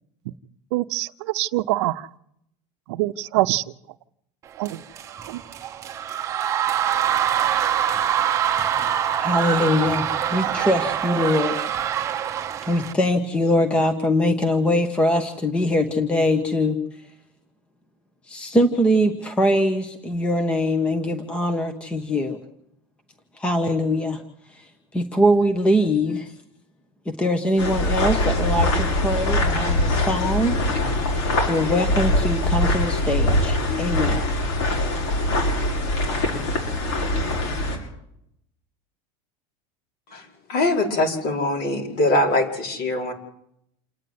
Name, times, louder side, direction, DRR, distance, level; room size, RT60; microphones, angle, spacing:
voice 1, 0.7-2.1 2.9-3.6 4.6-4.8 5.3-5.4, right 18 dB, 65° right, 11 dB, 0.8 m, -24 dB
sound 1, 4.6-12.9, right 10 dB, 20° right, 0.9 m, -24 dB
voice 2, 9.2-11.7 12.7-16.8 18.3-22.4 23.4-24.2 24.5-26.3 27.1-30.6 31.5-34.2, left 1 dB, 5° left, 7 dB, 1.0 m, -22 dB
sound 2, 27.6-37.8, left 1 dB, 70° left, 7.3 m, -23 dB
voice 3, 40.1-43.1, left 1 dB, 50° left, 1 dB, 5.0 m, -23 dB
28.5 x 9.7 x 9.5 m, 0.76 s
supercardioid pair, 180°, 15 cm